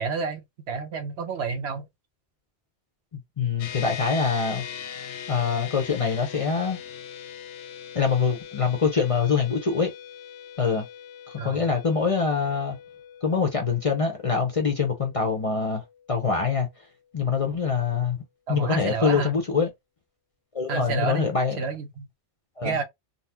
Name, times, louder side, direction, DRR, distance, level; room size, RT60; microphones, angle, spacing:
voice 1, 0.0-1.9 11.4-11.6 18.5-19.3 20.7-22.1 22.6-22.8, right 5 dB, 70° right, 0.9 m, -30 dB
voice 2, 3.1-4.6 5.3-6.8 7.9-9.9 10.6-10.9 11.3-12.8 13.2-16.7 17.1-18.2 18.5-19.7 20.5-21.6 22.6-22.8, left 5 dB, 35° left, 0.7 m, -24 dB
sound 1, 3.6-17.2, left 8 dB, 80° left, 0.9 m, -41 dB
3.9 x 2.0 x 2.8 m
omnidirectional pair, 1.2 m